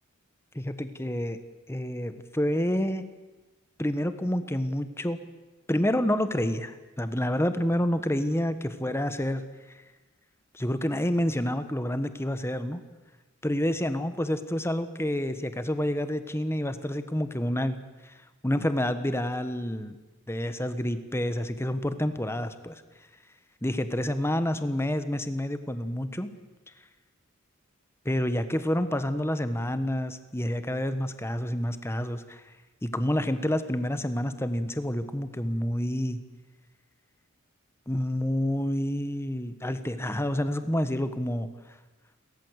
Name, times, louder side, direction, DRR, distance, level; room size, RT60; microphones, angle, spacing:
voice 1, 0.5-1.4 1.7-3.1 3.8-5.2 5.7-9.4 10.5-12.8 13.4-17.8 18.0-18.2 18.4-20.0 20.3-22.7 23.6-26.3 28.0-32.4 32.8-36.2 37.9-41.5, left 1 dB, 10° left, 11 dB, 1.2 m, -28 dB
29.5 x 14.0 x 8.1 m, 1.2 s
head